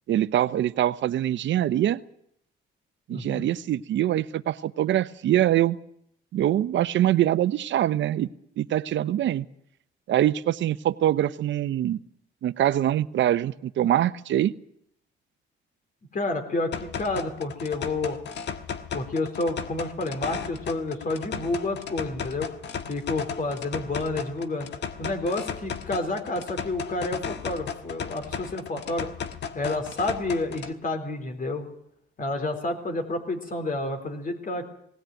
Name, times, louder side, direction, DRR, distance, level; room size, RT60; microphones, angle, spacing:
voice 1, 0.1-2.0 3.1-5.8 6.3-8.3 8.6-9.4 10.1-12.0 12.4-14.5, right 12 dB, 70° right, 15 dB, 0.8 m, -24 dB
voice 2, 3.1-3.5 16.1-18.2 18.9-22.5 22.9-24.7 25.0-29.1 29.5-31.6 32.2-34.6, left 2 dB, 45° left, 6 dB, 4.0 m, -29 dB
sound 1, 16.7-30.7, left 7 dB, 60° left, 1.5 m, -35 dB
18.5 x 17.0 x 9.1 m, 0.72 s
cardioid pair, 90°, 20 cm